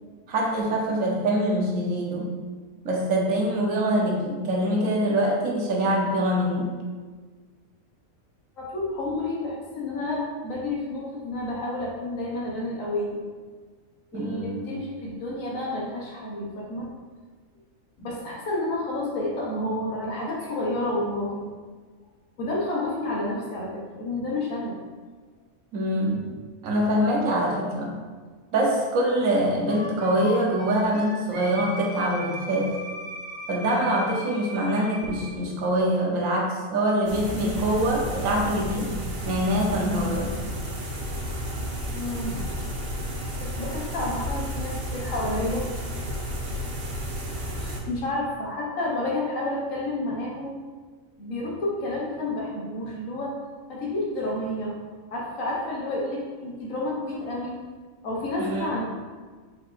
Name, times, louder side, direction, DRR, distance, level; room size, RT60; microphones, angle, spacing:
voice 1, 0.3-2.3 2.8-6.7 14.1-14.7 25.7-26.3 26.6-28.0 28.5-32.7 33.5-38.9 39.3-40.3 58.4-58.8, right 1 dB, 75° right, -1 dB, 1.2 m, -24 dB
voice 2, 8.6-13.2 14.1-16.9 18.0-21.5 22.4-24.8 41.9-42.5 43.4-45.7 47.5-50.6 51.2-53.4 53.7-54.8 55.1-57.6 58.0-58.8, left 1 dB, 75° left, -3 dB, 1.3 m, -30 dB
Wind instrument woodwind instrument, 29.7-35.3, left 1 dB, 25° right, 1.6 m, -37 dB
sound 1, 37.0-47.8, equal, 50° right, 1.0 m, -32 dB
4.6 x 4.5 x 2.5 m, 1.5 s
omnidirectional pair, 1.4 m